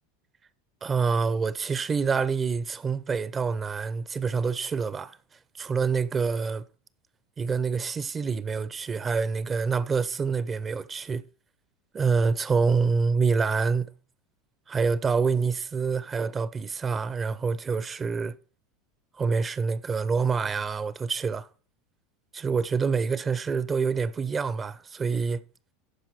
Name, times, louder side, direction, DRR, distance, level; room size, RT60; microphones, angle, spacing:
voice 1, 0.8-5.2 5.6-6.6 7.4-11.2 11.9-13.9 14.7-18.4 19.2-21.5 22.3-25.4, right 5 dB, 25° right, 0.5 m, -26 dB
11.5 x 4.7 x 4.6 m
hypercardioid pair, 105°, 0 cm